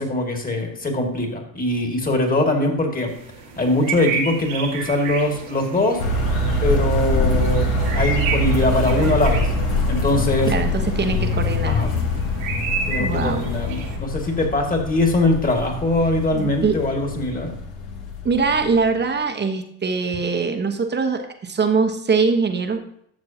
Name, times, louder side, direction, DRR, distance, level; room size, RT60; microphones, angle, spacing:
voice 1, 0.0-3.1 3.6-6.0 6.6-7.7 7.9-9.5 9.9-10.5 11.7-11.9 12.9-17.6, left 2 dB, 20° left, 3 dB, 2.3 m, -22 dB
sound 1, 3.1-14.0, right 4 dB, 85° right, 2.2 m, -31 dB
sound 2, 6.0-18.8, left 2 dB, 70° left, 1.9 m, -24 dB
voice 2, 10.5-11.8 13.0-13.5 16.3-16.8 18.2-22.8, right 4 dB, 25° right, 6 dB, 1.2 m, -22 dB
12.5 x 6.7 x 2.9 m, 0.68 s
supercardioid pair, 85°, 38 cm